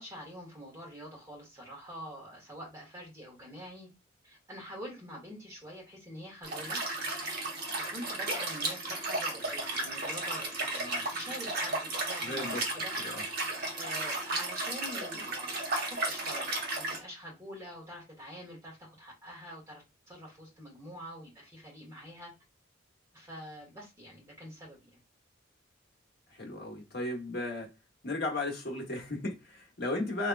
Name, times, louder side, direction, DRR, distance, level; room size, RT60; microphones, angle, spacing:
voice 1, 0.0-3.9 4.2-6.8 7.7-12.9 13.7-16.5 16.9-22.3 23.1-25.0, equal, 15° right, 1.8 m, -46 dB
Liquid, 6.4-17.0, right 2 dB, 50° right, 1.1 m, -34 dB
voice 2, 12.2-12.7 13.0-13.2 26.3-27.7 28.0-30.3, left 2 dB, 50° left, 1.1 m, -35 dB
3.5 x 3.1 x 2.4 m
head